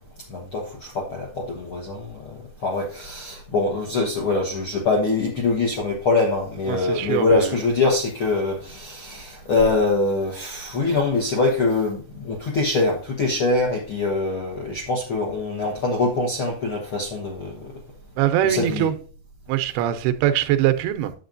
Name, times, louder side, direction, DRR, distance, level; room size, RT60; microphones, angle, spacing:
voice 1, 0.3-2.2 2.6-17.7 18.4-18.9, left 3 dB, 65° left, 1.3 m, -23 dB
voice 2, 6.7-7.6 18.2-18.9 19.5-21.1, right 12 dB, 80° right, 2.7 m, -22 dB
10.0 x 7.6 x 2.6 m
omnidirectional pair, 4.5 m